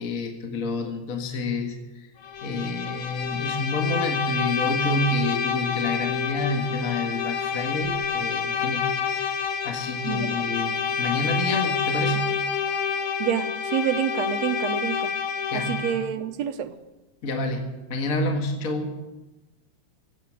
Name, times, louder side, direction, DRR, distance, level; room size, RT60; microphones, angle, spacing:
voice 1, 0.0-1.8 2.4-9.4 9.6-12.3 15.5-16.0 17.2-17.6 17.9-18.9, left 2 dB, 35° left, 3 dB, 1.6 m, -28 dB
Bowed string instrument, 2.2-16.1, left 6 dB, 55° left, 1.6 m, -28 dB
voice 2, 10.0-10.4 13.2-15.1 15.5-16.8, right 9 dB, 70° right, 9 dB, 1.9 m, -28 dB
16.5 x 8.7 x 9.3 m, 1.1 s
omnidirectional pair, 3.3 m